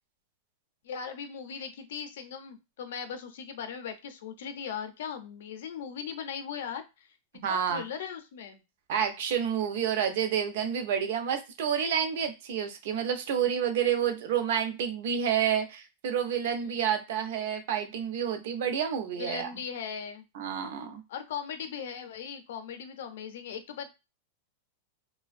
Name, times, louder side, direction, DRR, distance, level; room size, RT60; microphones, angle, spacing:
voice 1, 0.8-7.1 7.5-8.6 16.6-16.8 19.2-20.2 21.1-23.9, left 7 dB, 70° left, 8 dB, 0.5 m, -39 dB
voice 2, 7.4-7.8 8.9-19.5 20.3-21.0, right 8 dB, 55° right, 6 dB, 0.5 m, -29 dB
2.5 x 2.2 x 2.5 m, 0.26 s
supercardioid pair, 170°, 0 cm